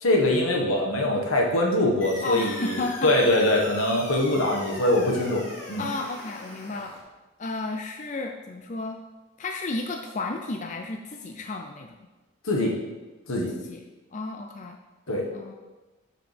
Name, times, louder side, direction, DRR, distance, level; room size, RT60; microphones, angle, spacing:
voice 1, 0.0-5.9 12.4-12.7 13.3-13.5 15.1-15.3, left 1 dB, 85° left, 0 dB, 1.5 m, -23 dB
sound 1, 2.0-7.0, left 1 dB, 60° left, 2.1 m, -40 dB
voice 2, 2.2-3.1 5.8-7.0 7.4-9.0 9.4-11.9 13.7-14.8 15.3-15.5, left 3 dB, 35° left, 4 dB, 0.4 m, -33 dB
12.0 x 5.0 x 3.4 m, 1.2 s
head